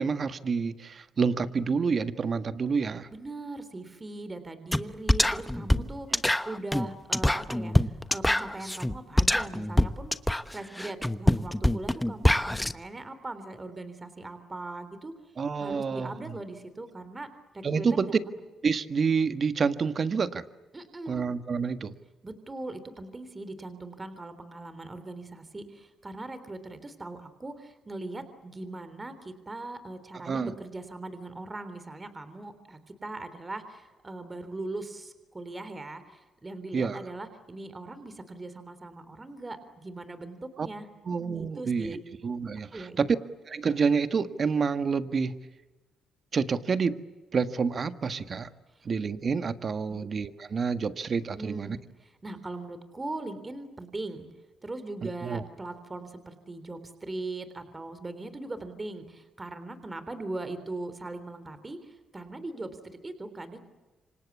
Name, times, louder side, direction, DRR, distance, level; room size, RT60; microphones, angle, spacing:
voice 1, 0.0-3.1 5.8-6.2 15.4-16.4 17.6-18.1 18.6-20.4 21.1-21.9 30.2-30.5 36.7-37.0 40.6-40.7 41.0-43.2 43.5-45.4 46.3-47.0 47.3-48.5 48.8-51.8 55.2-55.4, right 5 dB, 45° right, 11 dB, 1.6 m, -28 dB
voice 2, 3.1-10.2 10.5-15.1 15.6-17.3 17.5-18.4 20.7-21.3 22.2-40.9 41.2-42.0 42.7-43.0 48.7-48.8 51.3-54.3 54.6-63.6, right 2 dB, 20° right, 11 dB, 3.4 m, -40 dB
sound 1, 4.7-4.8 5.1-12.7, left 1 dB, 5° left, 1.1 m, -24 dB
28.0 x 25.5 x 8.3 m, 1.2 s
cardioid pair, 90°, 0 cm